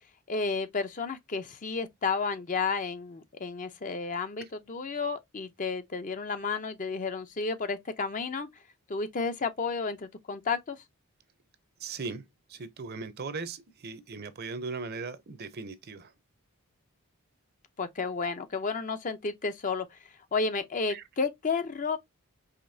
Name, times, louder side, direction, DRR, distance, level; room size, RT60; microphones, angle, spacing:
voice 1, 0.3-8.5 8.9-10.8 17.8-19.9 20.3-22.0, left 4 dB, 35° left, 0.6 m, -32 dB
voice 2, 11.8-12.2 12.5-16.1 20.9-21.0, right 4 dB, 45° right, 0.6 m, -38 dB
5.0 x 3.1 x 2.7 m
head